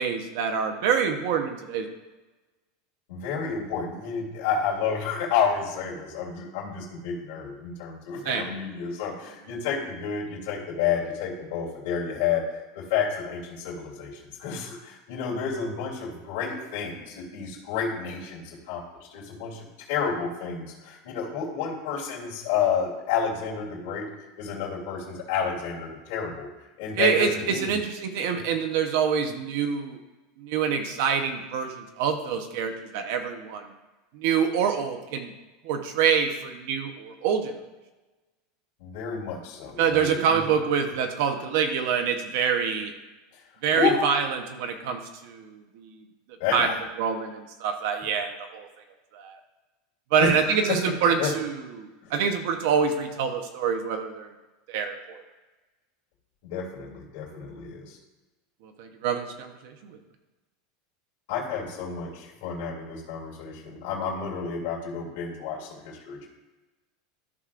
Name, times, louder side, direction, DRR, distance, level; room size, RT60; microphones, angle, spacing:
voice 1, 0.0-1.9 8.3-8.5 27.0-30.0 30.4-31.7 32.0-33.6 34.2-35.3 35.7-37.5 39.8-42.9 43.6-44.2 44.5-45.0 45.2-45.4 46.5-46.7 47.0-48.6 50.1-51.5 51.8-54.3 54.7-55.2 58.8-59.5, right 6 dB, 60° right, 5 dB, 0.8 m, -25 dB
voice 2, 3.1-24.0 24.4-26.5 26.8-27.8 28.3-28.4 38.8-40.6 43.3-43.4 43.7-44.1 46.4-46.8 50.2-51.3 52.0-52.1 56.4-58.0 61.3-66.3, left 6 dB, 60° left, -5 dB, 2.7 m, -30 dB
13.5 x 6.0 x 2.5 m, 1.1 s
supercardioid pair, 175°, 0 cm